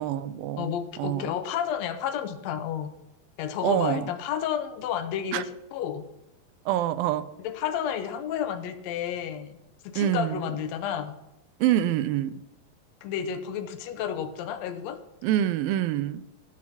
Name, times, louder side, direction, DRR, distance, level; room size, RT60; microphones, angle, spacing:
voice 1, 0.0-0.7 1.0-1.3 3.6-4.1 5.3-5.4 6.7-7.3 10.0-10.4 11.6-12.3 15.2-16.2, right 12 dB, 90° right, 13 dB, 2.4 m, -26 dB
voice 2, 0.6-2.9 3.4-6.1 7.4-9.6 9.8-11.2 13.0-15.0, left 9 dB, 85° left, 8 dB, 1.5 m, -31 dB
14.5 x 6.5 x 5.8 m, 0.87 s
omnidirectional pair, 4.1 m